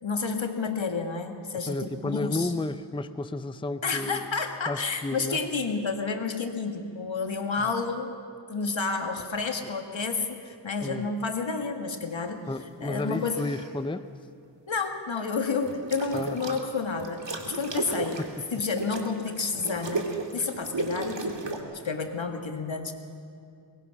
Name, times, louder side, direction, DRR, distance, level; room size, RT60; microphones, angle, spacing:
voice 1, 0.0-2.5 3.8-8.2 8.5-12.5 12.8-13.5 14.7-18.2 18.5-22.9, left 4 dB, 75° left, 5 dB, 1.9 m, -30 dB
voice 2, 1.7-4.2 4.7-5.4 10.8-11.1 12.5-14.1 16.1-16.4 18.2-18.3, left 2 dB, 10° left, 12 dB, 0.6 m, -32 dB
sound 1, 13.0-13.7 15.6-16.6 17.0-21.6, right 3 dB, 65° right, 2.3 m, -34 dB
23.0 x 20.5 x 5.9 m, 2.4 s
wide cardioid pair, 55°, 46 cm